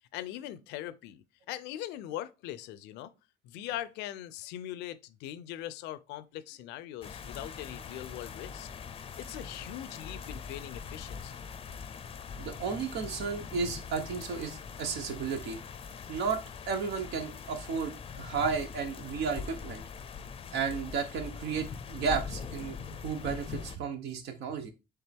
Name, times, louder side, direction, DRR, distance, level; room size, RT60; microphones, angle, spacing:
voice 1, 0.1-3.1 3.4-8.7 9.2-11.3, left 13 dB, 90° left, 0.5 m, -41 dB
sound 1, 7.0-23.8, left 6 dB, 35° left, 0.5 m, -42 dB
voice 2, 12.4-15.6 16.1-19.8 20.5-24.7, right 5 dB, 80° right, 1.0 m, -33 dB
4.4 x 3.4 x 3.5 m
cardioid pair, 110°, 17 cm